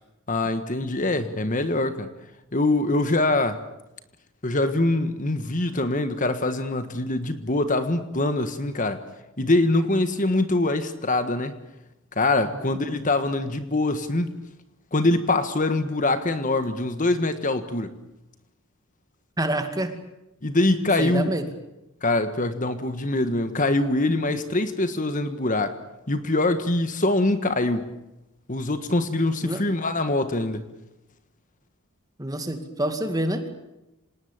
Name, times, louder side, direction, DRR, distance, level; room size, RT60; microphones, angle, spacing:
voice 1, 0.3-2.1 2.5-3.6 4.4-9.0 9.4-11.6 12.1-14.3 14.9-17.9 20.4-21.3 22.0-25.8 26.1-27.9 28.5-30.6, left 2 dB, 35° left, 10 dB, 1.5 m, -24 dB
voice 2, 19.4-19.9 21.0-21.4 29.4-29.6 32.2-33.5, right 1 dB, 15° right, 7 dB, 2.3 m, -27 dB
26.5 x 19.5 x 8.8 m, 0.94 s
head